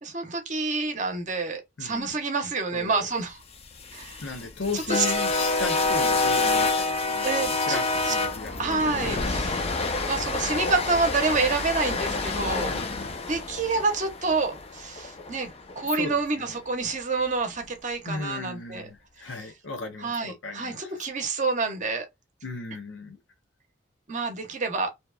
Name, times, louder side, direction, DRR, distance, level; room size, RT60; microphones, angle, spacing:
voice 1, 0.0-3.4 3.9-4.3 4.7-5.0 7.2-7.8 8.0-8.1 8.6-9.7 10.1-12.7 13.3-18.9 20.0-22.1 24.1-24.9, right 4 dB, 40° right, 0.8 m, -28 dB
voice 2, 1.8-2.1 2.7-3.1 4.2-7.8 8.1-9.1 12.7-13.3 15.9-16.6 18.1-20.9 22.4-23.2, left 3 dB, 85° left, 0.7 m, -36 dB
sound 1, 3.6-15.8, left 3 dB, 30° left, 0.5 m, -27 dB
2.8 x 2.2 x 2.2 m
head